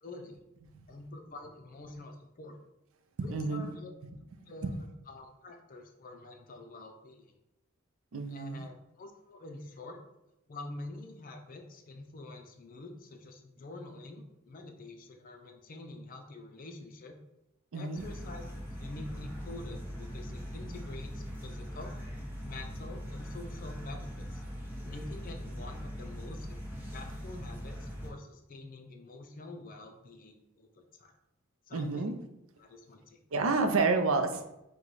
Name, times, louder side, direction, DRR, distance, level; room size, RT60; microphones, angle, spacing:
voice 1, 0.0-0.4 0.9-2.6 3.2-3.9 4.5-7.3 8.3-10.0 10.5-17.2 17.7-18.4 18.7-21.9 22.4-24.4 24.8-26.6 26.9-31.1 31.7-32.2 32.6-33.2, left 2 dB, 40° left, 4 dB, 0.5 m, -46 dB
voice 2, 3.2-3.7 4.6-4.8 8.1-8.6 17.7-18.1 31.7-32.2 33.3-34.4, right 3 dB, 75° right, 7 dB, 0.5 m, -29 dB
sound 1, 17.9-28.1, equal, 10° right, 0.9 m, -41 dB
4.7 x 2.2 x 3.9 m, 0.89 s
head